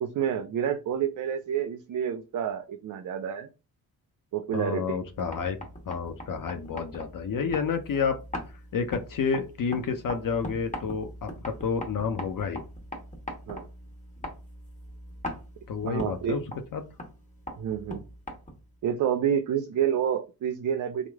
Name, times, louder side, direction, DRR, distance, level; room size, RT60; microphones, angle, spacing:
voice 1, 0.0-3.5 4.3-5.0 13.5-13.7 15.8-16.4 17.6-18.0 18.8-21.1, right 9 dB, 45° right, 9 dB, 0.4 m, -29 dB
voice 2, 4.5-5.6 5.9-8.2 8.7-12.6 15.7-16.4 16.7-16.8, left 6 dB, 45° left, 7 dB, 0.6 m, -30 dB
sound 1, 5.0-18.8, left 1 dB, 15° left, 1.3 m, -41 dB
3.0 x 2.0 x 3.4 m, 0.30 s
hypercardioid pair, 40°, 47 cm